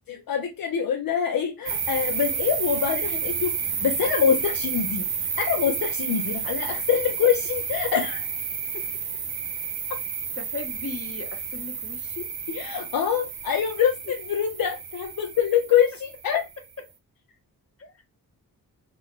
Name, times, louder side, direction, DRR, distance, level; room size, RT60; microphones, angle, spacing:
voice 1, 0.1-5.1 5.4-8.2 12.5-16.4, left 8 dB, 60° left, 0.6 m, -25 dB
sound 1, 1.7-16.7, right 6 dB, 70° right, 0.7 m, -31 dB
voice 2, 10.4-12.3, left 4 dB, 35° left, 1.0 m, -37 dB
2.9 x 2.3 x 3.2 m
supercardioid pair, 45°, 39 cm